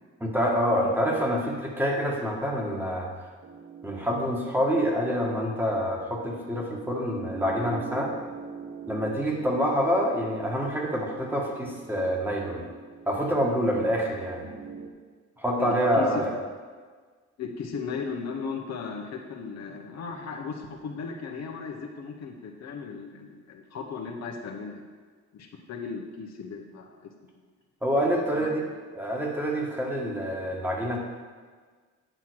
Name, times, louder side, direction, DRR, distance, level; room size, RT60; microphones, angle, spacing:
voice 1, 0.2-3.1 3.8-8.1 8.9-12.6 13.1-14.5 15.4-16.3 27.8-28.6 28.9-31.0, equal, 5° right, -2 dB, 1.7 m, -26 dB
sound 1, 3.4-14.9, right 6 dB, 45° right, 1.2 m, -43 dB
voice 2, 15.6-16.3 17.4-24.8 25.3-27.1 28.4-28.5, left 5 dB, 60° left, 1 dB, 1.1 m, -36 dB
9.0 x 5.7 x 4.7 m, 1.5 s
cardioid pair, 90°, 30 cm